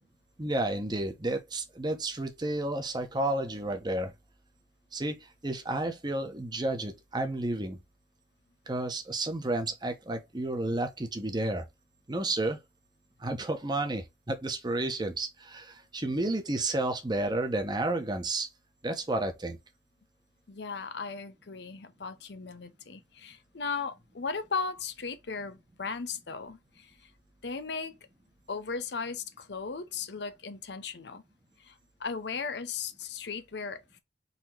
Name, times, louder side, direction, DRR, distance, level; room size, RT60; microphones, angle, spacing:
voice 1, 0.4-4.1 4.9-5.2 5.4-7.8 8.7-11.7 12.1-12.6 13.2-18.5 18.8-19.6, right 2 dB, 25° right, 0.8 m, -31 dB
voice 2, 20.5-27.1 27.4-28.0 28.5-31.2 31.6-34.0, left 5 dB, 75° left, 0.7 m, -37 dB
4.1 x 3.0 x 4.4 m
head